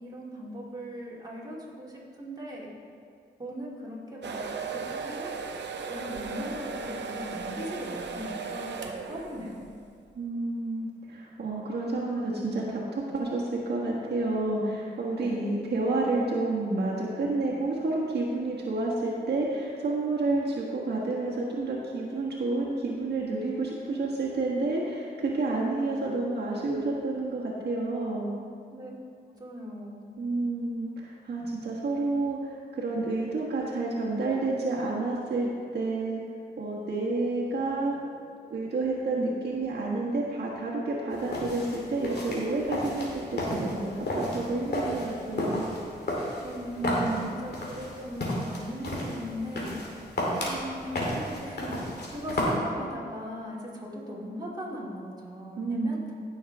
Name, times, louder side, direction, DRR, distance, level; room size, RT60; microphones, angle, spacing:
voice 1, 0.0-1.9 2.2-2.7 3.4-5.3 5.9-9.7 15.1-15.6 28.7-28.9 29.4-30.1 46.4-47.0 47.4-49.8 50.5-56.0, equal, 20° right, -6 dB, 2.7 m, -39 dB
sound 1, 4.2-9.7, right 5 dB, 85° right, 0.7 m, -36 dB
voice 2, 10.1-28.3 30.2-36.2 36.6-38.0 38.5-45.7 46.7-47.3 55.6-56.1, right 2 dB, 70° right, -5 dB, 1.5 m, -30 dB
sound 2, 41.1-52.5, left 1 dB, 65° left, 2.3 m, -33 dB
16.0 x 6.4 x 3.6 m, 2.3 s
cardioid pair, 75°, 18 cm